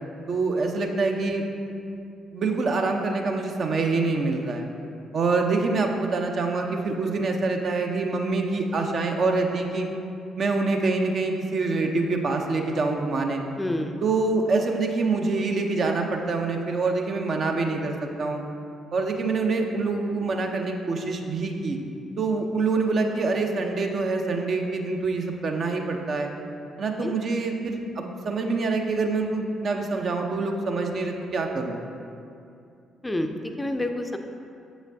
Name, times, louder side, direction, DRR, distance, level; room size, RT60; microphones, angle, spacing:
voice 1, 0.3-1.4 2.3-4.7 5.1-9.9 10.4-13.4 14.0-18.4 18.9-21.8 22.2-26.3 26.8-31.8, right 3 dB, 50° right, 3 dB, 0.5 m, -25 dB
voice 2, 13.6-14.0 27.0-27.1 33.0-34.2, left 1 dB, 15° left, 6 dB, 0.4 m, -28 dB
7.3 x 5.0 x 2.6 m, 2.5 s
figure-of-eight pair, 45°, 0 cm